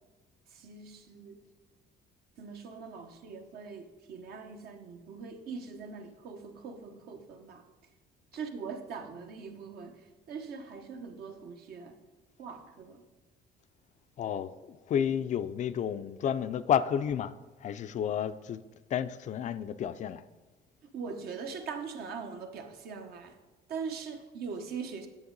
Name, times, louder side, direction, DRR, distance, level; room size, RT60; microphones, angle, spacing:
voice 1, 0.5-1.4 2.4-7.6 8.3-10.0 10.3-11.9 12.4-13.0 20.9-23.3 23.7-25.1, right 5 dB, 65° right, 1.1 m, -41 dB
voice 2, 14.2-17.3 17.6-18.6 18.9-20.2, left 9 dB, 45° left, 0.4 m, -31 dB
8.7 x 7.0 x 3.9 m
cardioid pair, 110°, 17 cm